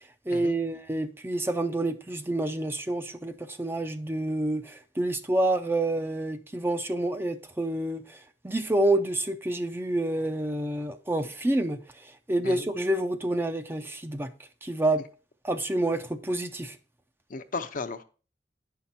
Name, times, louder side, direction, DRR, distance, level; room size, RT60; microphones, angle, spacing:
voice 1, 0.0-14.3 14.6-15.0 15.4-16.8, right 1 dB, 15° right, 0.6 m, -28 dB
voice 2, 17.3-18.0, left 4 dB, 50° left, 0.7 m, -35 dB
9.6 x 5.8 x 4.1 m
head